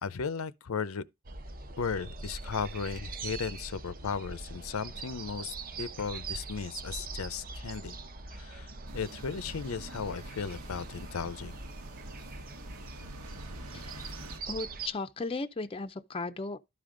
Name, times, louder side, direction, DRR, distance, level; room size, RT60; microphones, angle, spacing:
voice 1, 0.0-1.0 1.8-8.0 8.3-11.6, left 5 dB, 70° left, 0.6 m, -36 dB
sound 1, 1.2-14.9, right 3 dB, 40° right, 0.8 m, -42 dB
sound 2, 8.9-14.4, right 1 dB, 90° right, 1.4 m, -47 dB
voice 2, 13.7-14.2 14.5-16.6, left 3 dB, 25° left, 0.5 m, -36 dB
12.0 x 5.1 x 3.8 m
head